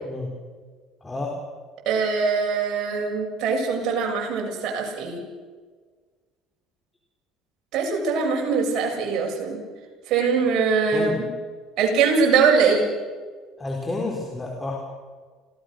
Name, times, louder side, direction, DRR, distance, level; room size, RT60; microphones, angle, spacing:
voice 1, 1.0-1.3 10.9-11.2 13.6-14.8, left 3 dB, 20° left, 0 dB, 4.1 m, -29 dB
voice 2, 1.9-5.2 7.7-9.6 10.1-11.1 11.8-12.8, right 5 dB, 60° right, 1 dB, 7.2 m, -22 dB
27.5 x 17.5 x 6.6 m, 1.5 s
supercardioid pair, 85°, 0 cm